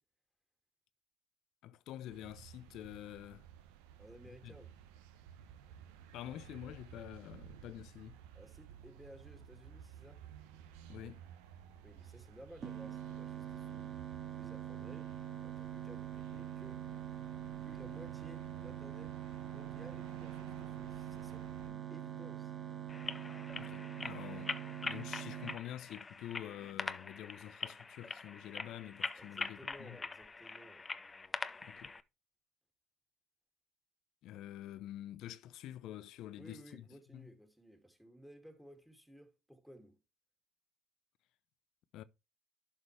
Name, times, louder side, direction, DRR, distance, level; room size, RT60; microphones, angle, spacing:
voice 1, 1.6-3.4 4.3-4.5 6.1-8.2 10.9-11.2 23.5-24.5 24.8-30.0 31.6-31.9 34.2-36.9 37.1-37.3 41.9-42.0, left 12 dB, 65° left, 0.7 m, -47 dB
sound 1, 2.1-21.7, right 10 dB, 80° right, 0.9 m, -55 dB
voice 2, 4.0-4.7 8.3-10.2 11.8-14.0 14.4-15.1 15.4-16.9 17.6-22.5 29.2-30.9 36.4-40.0, equal, 5° right, 2.6 m, -56 dB
sound 2, 12.6-25.6, right 11 dB, 45° right, 2.0 m, -44 dB
sound 3, 22.9-32.0, left 4 dB, 25° left, 0.7 m, -43 dB
11.5 x 5.2 x 3.3 m
hypercardioid pair, 65°, 0 cm